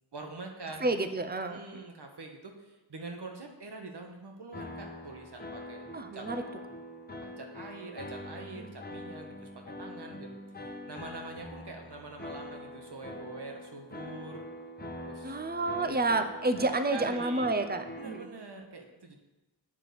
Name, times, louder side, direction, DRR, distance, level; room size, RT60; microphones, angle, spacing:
voice 1, 0.1-0.9 1.4-5.9 6.1-6.3 7.2-9.5 9.8-10.4 10.9-14.4 14.9-15.4 15.8-16.2 16.9-17.5 18.0-19.2, right 3 dB, 75° right, 2 dB, 1.4 m, -44 dB
voice 2, 0.8-1.6 5.9-6.4 8.6-8.7 15.2-18.3, right 2 dB, 25° right, 9 dB, 0.8 m, -30 dB
sound 1, 4.5-18.2, left 1 dB, 25° left, 1.2 m, -44 dB
9.1 x 6.1 x 6.9 m, 1.1 s
wide cardioid pair, 55°, 41 cm